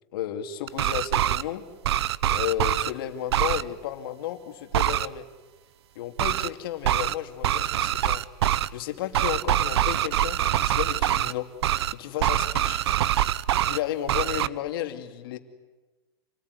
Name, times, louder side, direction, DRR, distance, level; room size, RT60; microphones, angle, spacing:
voice 1, 0.1-1.6 2.3-5.2 5.9-8.2 8.7-11.5 11.9-12.8 13.6-15.4, left 11 dB, 60° left, 6 dB, 2.7 m, -33 dB
sound 1, 0.7-1.4 1.8-2.9 3.3-3.6 4.7-5.1 6.2-6.5 6.8-7.2 7.4-8.7 9.1-11.3 11.6-11.9 12.2-13.8 14.1-14.5, right 12 dB, 80° right, 0.8 m, -24 dB
28.0 x 19.5 x 9.7 m, 1.2 s
supercardioid pair, 165°, 13 cm